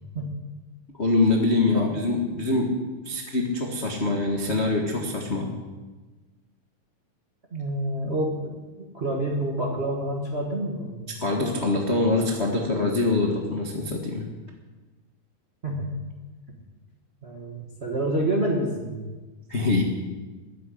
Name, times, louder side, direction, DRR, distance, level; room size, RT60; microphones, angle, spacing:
voice 1, 1.0-2.7 3.0-5.5 11.2-14.3 19.5-19.8, left 3 dB, 55° left, -1 dB, 0.7 m, -24 dB
voice 2, 7.5-11.1 15.6-15.9 17.2-19.1, right 1 dB, 55° right, -1 dB, 0.6 m, -28 dB
13.5 x 7.8 x 9.9 m, 1.3 s
omnidirectional pair, 3.9 m